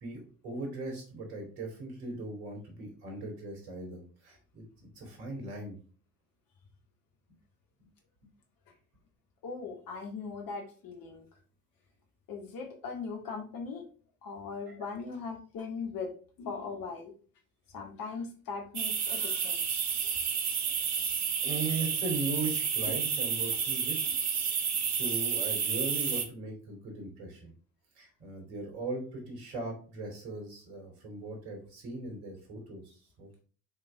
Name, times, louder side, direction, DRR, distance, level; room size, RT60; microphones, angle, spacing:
voice 1, 0.0-5.7 20.9-21.0 21.4-24.0 24.5-27.5 27.9-33.3, right 2 dB, 60° right, 2 dB, 3.1 m, -39 dB
voice 2, 9.4-11.2 12.3-13.8 14.2-17.1 17.7-19.9, left 4 dB, 45° left, 2 dB, 2.1 m, -39 dB
sound 1, 18.8-26.3, right 6 dB, 35° right, 1.3 m, -30 dB
6.9 x 5.1 x 3.5 m, 0.40 s
figure-of-eight pair, 60°, 47 cm